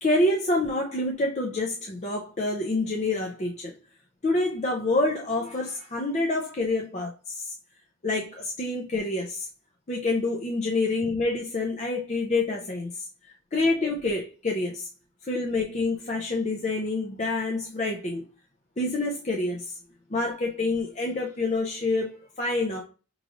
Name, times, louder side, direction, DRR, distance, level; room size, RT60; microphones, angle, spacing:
voice 1, 0.0-3.7 4.2-7.5 8.0-9.5 9.9-13.1 13.5-14.9 15.2-18.2 18.8-19.8 20.1-22.8, left 2 dB, 35° left, 0.5 m, -27 dB
4.9 x 3.1 x 2.5 m
head